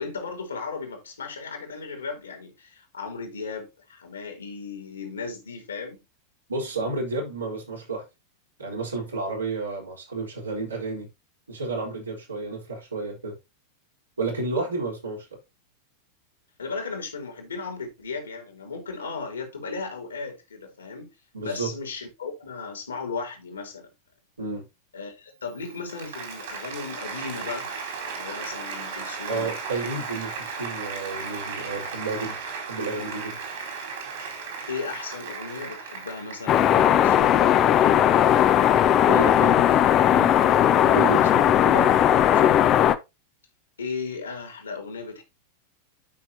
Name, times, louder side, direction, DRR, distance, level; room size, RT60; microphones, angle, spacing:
voice 1, 0.0-6.0 16.6-21.1 21.4-23.9 24.9-27.7 28.1-29.6 30.1-30.2 34.7-37.6 43.8-45.2, left 4 dB, 75° left, 3.6 m, -36 dB
voice 2, 6.5-8.0 8.6-11.1 11.5-13.4 14.2-15.3 21.3-21.7 24.4-24.6 29.3-32.4 32.6-33.4 39.1-40.5 40.8-42.5, right 3 dB, 75° right, 4.2 m, -31 dB
Applause, 25.5-37.1, right 5 dB, 55° right, 4.0 m, -36 dB
sound 1, 36.5-43.0, left 10 dB, 35° left, 0.9 m, -18 dB
12.0 x 6.0 x 2.9 m
figure-of-eight pair, 90°, 0 cm